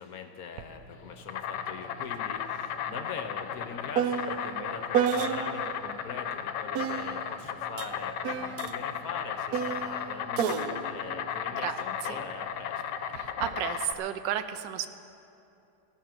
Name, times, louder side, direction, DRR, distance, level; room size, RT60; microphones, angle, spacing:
voice 1, 0.0-12.8, left 6 dB, 60° left, 7 dB, 1.2 m, -42 dB
sound 1, 0.6-0.7 1.1-5.8 6.7-12.3 13.1-13.6, right 8 dB, 70° right, 1.0 m, -33 dB
Insect, 0.9-13.9, left 8 dB, 80° left, 1.3 m, -35 dB
voice 2, 11.5-12.2 13.1-14.9, right 10 dB, 85° right, 11 dB, 1.4 m, -33 dB
14.5 x 12.5 x 5.9 m, 2.7 s
omnidirectional pair, 1.9 m